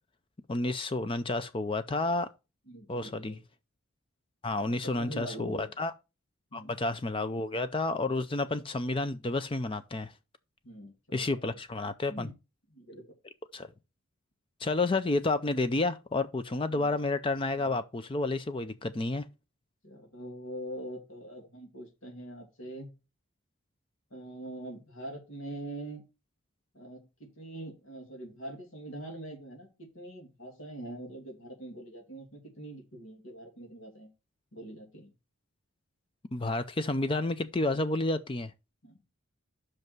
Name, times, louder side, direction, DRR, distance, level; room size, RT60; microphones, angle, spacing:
voice 1, 0.5-2.3 2.9-3.3 4.4-5.9 6.5-10.1 11.1-12.3 13.5-13.7 14.6-19.2 36.3-38.5, left 2 dB, 25° left, 0.4 m, -30 dB
voice 2, 2.7-3.4 4.7-5.7 6.5-6.7 10.6-11.6 12.1-12.3 12.7-13.0 19.8-22.9 24.1-26.0 26.7-34.1 34.5-35.1 38.8-39.0, right 1 dB, 65° left, 2.7 m, -43 dB
5.9 x 5.3 x 6.0 m
head